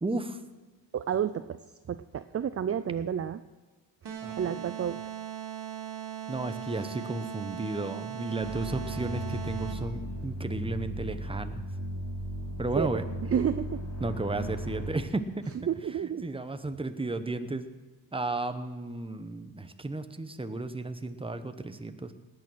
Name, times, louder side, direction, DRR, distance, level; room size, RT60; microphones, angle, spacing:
voice 1, 0.0-0.4 4.2-4.5 6.3-11.7 12.6-13.0 14.0-15.2 16.2-17.7 18.1-22.1, right 2 dB, 10° right, 9 dB, 0.9 m, -33 dB
voice 2, 0.9-1.6 1.9-3.4 4.4-5.0 12.8-13.8 15.7-16.2, right 8 dB, 35° right, 12 dB, 0.5 m, -30 dB
sound 1, 4.0-10.0, right 10 dB, 60° right, 2.4 m, -39 dB
sound 2, 8.4-14.9, equal, 35° left, 4.5 m, -36 dB
19.0 x 8.9 x 6.2 m, 1.3 s
cardioid pair, 120°, 45 cm